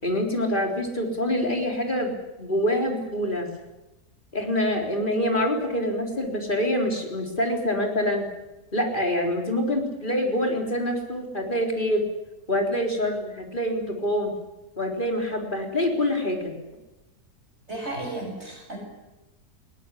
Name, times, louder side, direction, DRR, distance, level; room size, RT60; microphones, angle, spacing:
voice 1, 0.0-3.5 4.3-8.3 8.7-12.1 12.5-14.3 14.8-16.5, left 1 dB, 30° left, 2 dB, 4.0 m, -26 dB
voice 2, 17.7-18.8, right 2 dB, 40° right, 0 dB, 8.2 m, -33 dB
20.5 x 18.0 x 9.9 m, 1.0 s
omnidirectional pair, 1.7 m